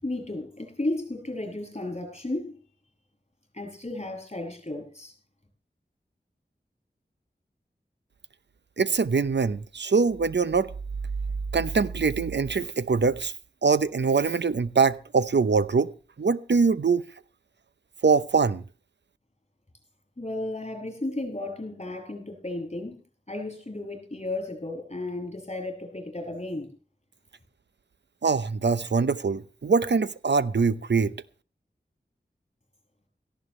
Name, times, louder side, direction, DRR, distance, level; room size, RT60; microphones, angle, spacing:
voice 1, 0.0-2.6 3.5-5.1 20.2-23.0 23.3-26.7, left 2 dB, 40° left, 7.1 m, -34 dB
voice 2, 8.8-10.7 11.5-13.3 13.6-15.9 16.2-17.0 18.0-18.6 28.2-31.1, right 4 dB, 85° right, 0.8 m, -23 dB
17.5 x 15.0 x 3.2 m
wide cardioid pair, 50°, 18 cm